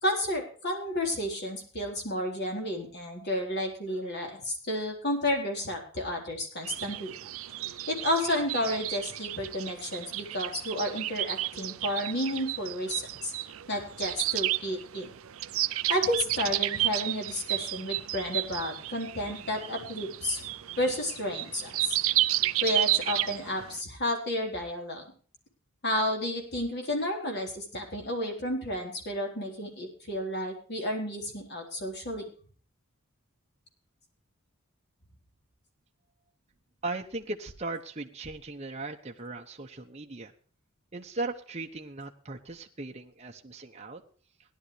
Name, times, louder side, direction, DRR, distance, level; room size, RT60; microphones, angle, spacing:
voice 1, 0.0-7.1 7.9-13.3 13.7-15.1 15.9-20.4 20.8-22.0 22.6-25.0 25.8-32.3, left 1 dB, 50° left, 2 dB, 4.1 m, -31 dB
sound 1, 6.6-23.8, right 15 dB, 70° right, 0.5 m, -32 dB
voice 2, 36.8-40.3 40.9-44.0, right 2 dB, 30° right, 2 dB, 0.9 m, -38 dB
17.5 x 11.5 x 3.3 m, 0.43 s
head